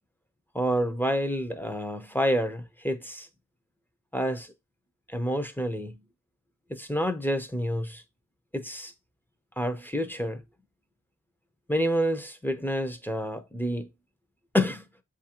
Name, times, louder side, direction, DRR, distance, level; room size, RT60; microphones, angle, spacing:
voice 1, 0.5-3.3 4.1-4.5 5.1-6.0 6.7-8.0 8.5-8.9 9.6-10.4 11.7-13.9 14.5-14.8, equal, 5° left, 0.5 m, -28 dB
6.8 x 2.5 x 2.8 m
wide cardioid pair, 75°, 32 cm